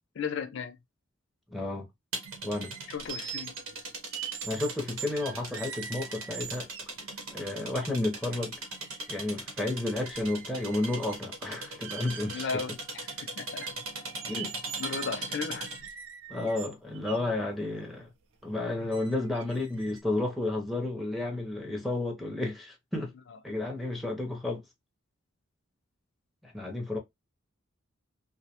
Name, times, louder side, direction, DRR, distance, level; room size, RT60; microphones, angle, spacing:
voice 1, 0.2-0.8 2.9-3.6 12.3-13.7 14.4-14.5 14.8-15.7 23.3-23.4, left 5 dB, 60° left, 0.4 m, -35 dB
voice 2, 1.5-1.9 2.4-2.7 4.4-6.7 7.3-8.6 9.1-12.6 14.3-14.5 16.3-18.1 18.4-23.1 23.4-24.6 26.4-27.0, left 2 dB, ahead, 0.5 m, -32 dB
sound 1, 2.1-15.9, right 2 dB, 85° right, 1.0 m, -39 dB
sound 2, 2.3-7.0 7.6-7.7 8.0-9.3 9.6-11.3 11.7-12.5 13.1-13.2 13.6-17.2 17.9-18.0 18.4-18.6 18.9-20.0, right 8 dB, 60° right, 0.4 m, -43 dB
2.6 x 2.1 x 2.8 m
head